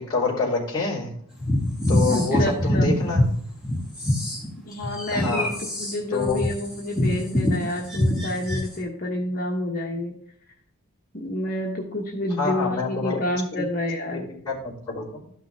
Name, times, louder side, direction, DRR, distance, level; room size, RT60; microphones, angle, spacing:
voice 1, 0.1-1.1 1.9-3.2 5.1-5.5 6.1-6.4 12.4-13.2 14.1-14.2 14.4-15.3, left 3 dB, 15° left, -11 dB, 3.5 m, -27 dB
sound 1, 1.4-3.3 3.6-8.7, left 1 dB, ahead, 2.8 m, -24 dB
voice 2, 2.1-3.0 4.6-10.1 11.1-14.3, left 1 dB, 40° left, -1 dB, 1.2 m, -29 dB
12.5 x 6.0 x 3.5 m, 0.65 s
head